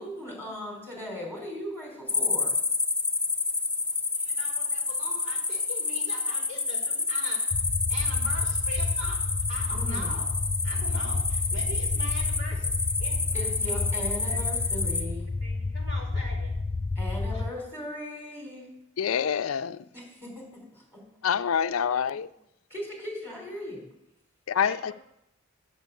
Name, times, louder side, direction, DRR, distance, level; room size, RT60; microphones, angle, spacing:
voice 1, 0.0-2.6 9.7-10.2 13.3-15.3 16.9-18.7 19.9-21.0 22.7-23.8, left 1 dB, 10° right, 4.5 m, -38 dB
sound 1, 2.1-15.0, left 4 dB, 5° left, 0.8 m, -29 dB
voice 2, 4.1-7.4 7.9-9.2 9.5-10.3 10.6-12.7 13.0-13.8 14.2-14.4 15.4-16.5 24.5-24.9, right 1 dB, 90° right, 4.2 m, -42 dB
sound 2, 7.5-17.5, left 3 dB, 20° left, 0.3 m, -31 dB
voice 3, 19.0-19.8 21.2-22.3 24.5-24.9, left 7 dB, 90° left, 0.4 m, -26 dB
10.0 x 6.8 x 8.3 m
head